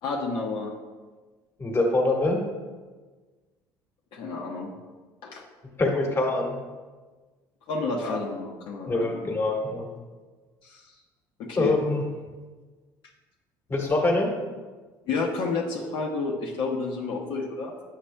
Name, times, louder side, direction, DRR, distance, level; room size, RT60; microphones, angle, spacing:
voice 1, 0.0-0.7 4.1-4.7 5.2-5.4 7.7-9.3 10.6-10.9 11.4-11.8 15.1-17.7, left 3 dB, 70° left, -2 dB, 0.9 m, -30 dB
voice 2, 1.6-2.4 5.8-6.6 8.9-9.9 11.6-12.0 13.7-14.3, left 2 dB, 30° left, 1 dB, 1.4 m, -24 dB
8.5 x 6.5 x 2.2 m, 1.3 s
cardioid pair, 100°, 9 cm